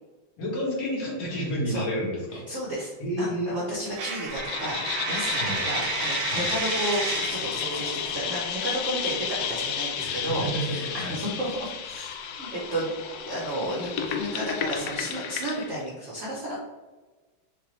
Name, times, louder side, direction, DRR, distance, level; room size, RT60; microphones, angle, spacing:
voice 1, 0.4-2.4 3.0-3.6 5.4-5.6 6.3-6.5 10.0-11.1, equal, 65° left, -5 dB, 2.2 m, -30 dB
voice 2, 2.5-4.8 5.1-12.9 13.2-16.6, right 1 dB, 55° right, -5 dB, 0.9 m, -32 dB
Coin (dropping), 4.0-7.5, right 6 dB, 75° right, 1.3 m, -31 dB
sound 1, 4.3-15.8, left 7 dB, 80° left, 0.8 m, -32 dB
6.5 x 2.4 x 3.1 m, 1.3 s
omnidirectional pair, 2.2 m